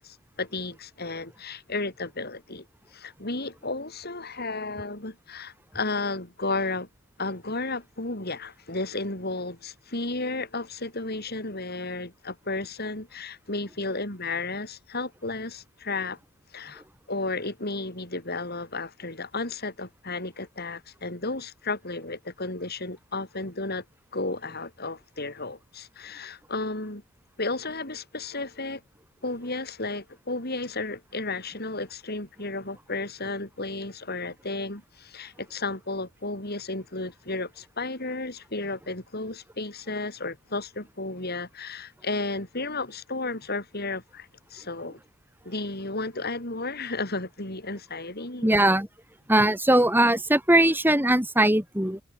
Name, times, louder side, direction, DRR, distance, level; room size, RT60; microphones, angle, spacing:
voice 1, 0.0-2.7 2.9-6.9 7.2-16.2 16.5-16.8 17.1-23.8 24.1-27.0 27.4-28.8 29.2-45.0 45.4-48.5, left 3 dB, 50° left, 6.9 m, -33 dB
voice 2, 48.4-48.9 49.3-52.0, right 1 dB, 10° right, 6.7 m, -20 dB
head